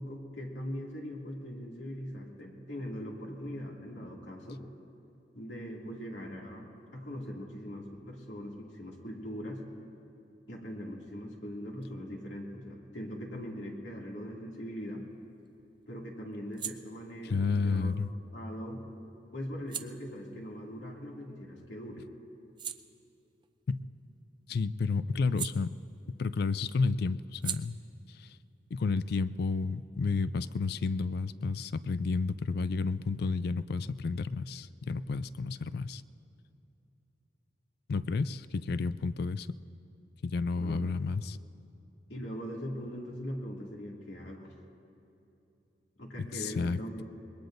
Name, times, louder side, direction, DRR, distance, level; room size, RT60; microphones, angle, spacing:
voice 1, 0.0-4.6 5.3-9.6 10.5-15.0 15.9-17.9 18.3-18.8 19.3-22.1 40.6-40.8 42.1-44.5 46.0-47.0, equal, 85° left, -2 dB, 2.4 m, -41 dB
sound 1, 14.8-21.7 22.1-26.3 26.6-30.0, right 8 dB, 25° right, 0.4 m, -46 dB
voice 2, 17.3-18.1 23.7-23.8 24.5-25.8 26.1-27.8 28.1-28.4 28.7-36.0 37.9-39.5 40.2-41.4 46.3-47.0, left 4 dB, 60° left, 15 dB, 0.4 m, -31 dB
25.5 x 21.0 x 2.6 m, 2.8 s
head